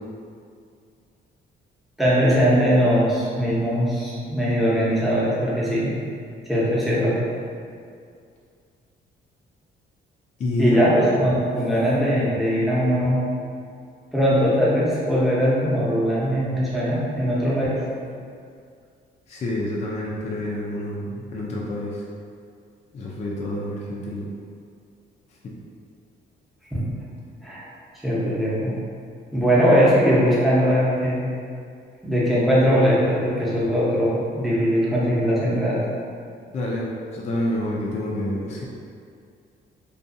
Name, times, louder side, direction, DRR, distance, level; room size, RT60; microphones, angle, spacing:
voice 1, 2.0-5.9 6.5-7.2 10.6-13.2 14.1-17.8 26.7-26.9 27.4-27.6 28.0-28.7 29.3-31.3 32.0-35.8, equal, ahead, -8 dB, 0.7 m, -20 dB
voice 2, 10.4-10.8 19.3-22.0 22.9-24.3 36.5-38.7, left 1 dB, 35° left, -4 dB, 0.4 m, -28 dB
2.6 x 2.3 x 2.6 m, 2.3 s
cardioid pair, 90°, 20 cm